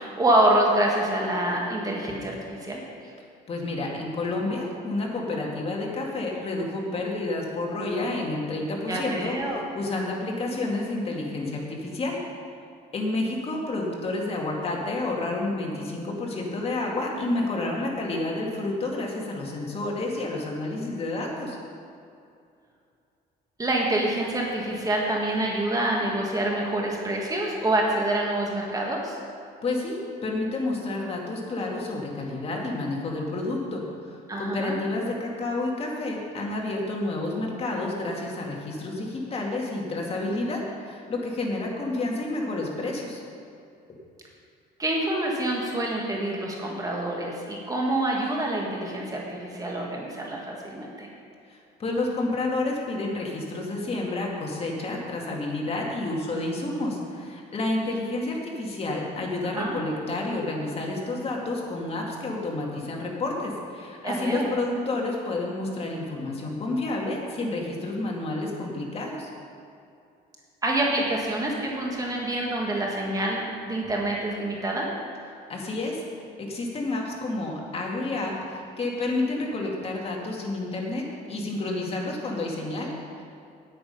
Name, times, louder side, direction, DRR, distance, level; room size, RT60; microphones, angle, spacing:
voice 1, 0.0-2.8 8.9-9.6 23.6-29.2 34.3-34.7 44.8-51.1 59.4-59.7 64.0-64.5 70.6-74.9, right 1 dB, 20° right, -2 dB, 1.6 m, -26 dB
voice 2, 3.5-12.2 12.9-21.6 29.6-43.2 51.5-69.3 75.5-76.0 76.4-83.2, left 2 dB, 35° left, -1 dB, 2.3 m, -30 dB
9.6 x 8.8 x 5.5 m, 2.5 s
cardioid pair, 110°, 17 cm